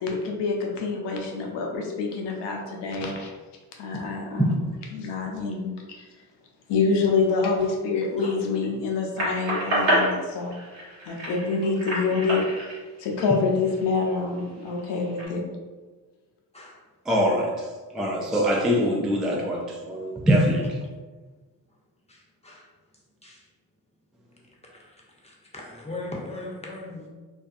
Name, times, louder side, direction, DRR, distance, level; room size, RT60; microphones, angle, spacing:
voice 1, 0.0-3.3 3.8-4.6 4.9-6.1 6.7-10.6 11.1-15.4, left 4 dB, 70° left, 0 dB, 0.7 m, -26 dB
sound 1, 9.2-13.9 14.4-15.3, equal, 85° right, 1.0 m, -28 dB
voice 2, 17.1-17.7 17.9-20.7, equal, ahead, -1 dB, 0.3 m, -23 dB
voice 3, 25.5-27.1, left 2 dB, 15° left, -2 dB, 0.7 m, -37 dB
2.5 x 2.2 x 2.6 m, 1.3 s
supercardioid pair, 50°, 43 cm